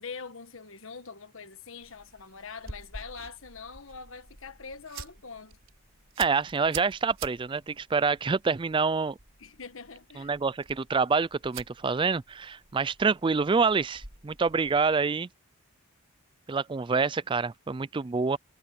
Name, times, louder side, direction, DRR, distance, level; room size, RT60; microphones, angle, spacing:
voice 1, 0.0-5.6 9.4-10.3, left 5 dB, 65° left, 1.3 m, -43 dB
sound 1, 1.8-15.0, right 5 dB, 60° right, 5.8 m, -48 dB
voice 2, 6.2-9.2 10.2-15.3 16.5-18.4, right 4 dB, 20° right, 0.3 m, -27 dB
head